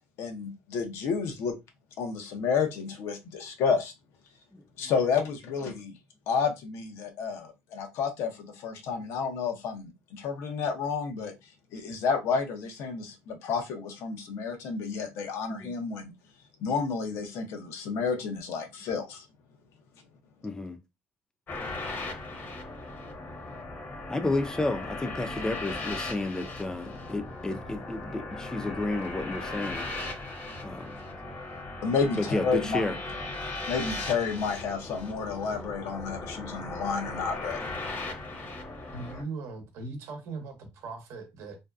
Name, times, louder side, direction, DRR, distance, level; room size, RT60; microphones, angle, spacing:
voice 1, 0.2-1.5 2.0-3.9 4.8-5.9 6.3-11.3 11.7-16.1 16.6-19.2 31.8-32.8 33.7-37.6, left 5 dB, 70° left, 0.7 m, -30 dB
voice 2, 20.4-20.8 24.1-29.9 30.6-31.0 32.2-33.0, left 2 dB, 15° left, 0.4 m, -31 dB
sound 1, 21.5-39.2, left 2 dB, 40° left, 0.8 m, -38 dB
voice 3, 38.9-41.6, right 3 dB, 70° right, 0.8 m, -39 dB
2.6 x 2.2 x 2.3 m
supercardioid pair, 85°, 5 cm